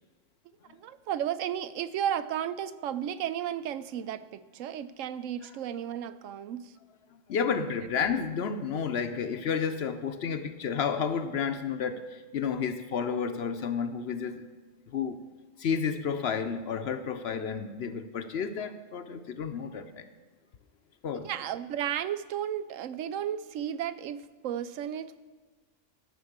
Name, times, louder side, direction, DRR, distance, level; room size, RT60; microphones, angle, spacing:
voice 1, 0.7-6.7 7.8-7.9 21.1-25.3, right 10 dB, 80° right, 14 dB, 1.0 m, -34 dB
voice 2, 7.3-14.4 14.9-15.2 15.6-20.1 21.0-21.3, left 6 dB, 60° left, 9 dB, 0.8 m, -31 dB
13.5 x 6.0 x 7.2 m, 1.3 s
omnidirectional pair, 1.3 m